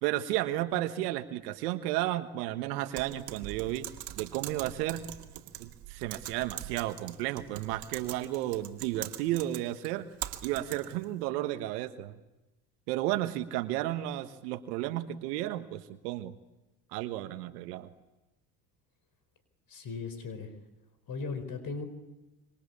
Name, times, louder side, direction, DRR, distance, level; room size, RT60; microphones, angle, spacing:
voice 1, 0.0-3.9 4.2-5.0 5.6-10.1 10.4-12.2 12.9-16.3 16.9-17.9, right 15 dB, 75° right, 10 dB, 1.5 m, -33 dB
Typing, 3.0-11.1, right 12 dB, 55° right, 2.4 m, -43 dB
voice 2, 19.7-20.5 21.1-21.8, left 4 dB, 45° left, 10 dB, 4.7 m, -37 dB
26.0 x 25.0 x 8.6 m, 1.0 s
hypercardioid pair, 70°, 48 cm